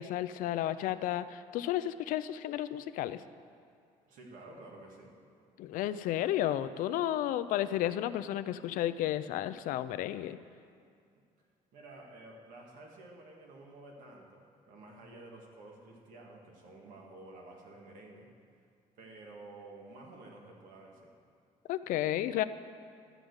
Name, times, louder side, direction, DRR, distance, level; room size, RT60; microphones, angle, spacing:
voice 1, 0.0-3.2 5.6-10.4 21.7-22.4, left 12 dB, 80° left, 13 dB, 0.4 m, -32 dB
voice 2, 4.1-5.2 11.7-18.3 19.0-21.2, right 2 dB, 80° right, 0 dB, 1.9 m, -51 dB
13.0 x 5.0 x 8.0 m, 2.3 s
cardioid pair, 150°, 14 cm